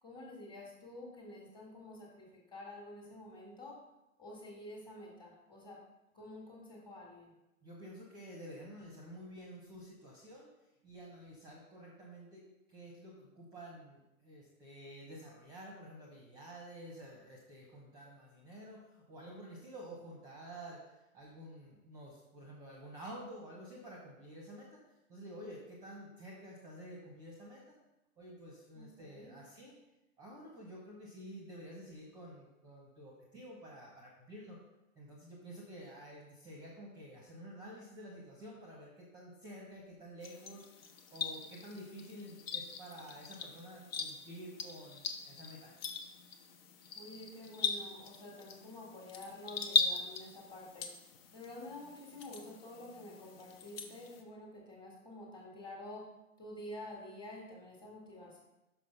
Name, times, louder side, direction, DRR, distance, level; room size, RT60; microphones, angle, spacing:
voice 1, 0.0-3.8 4.2-5.8 6.1-7.3 28.7-29.3 46.9-50.9 51.3-56.1 56.4-58.4, left 1 dB, 10° left, -2 dB, 1.7 m, -49 dB
voice 2, 7.6-10.5 10.8-24.8 25.1-27.8 28.2-29.7 30.2-34.6 34.9-40.6 41.1-45.7, equal, 10° right, -3 dB, 1.0 m, -50 dB
sound 1, 40.2-54.2, left 5 dB, 45° left, 1.0 m, -40 dB
6.1 x 5.5 x 5.4 m, 0.95 s
hypercardioid pair, 150°, 42 cm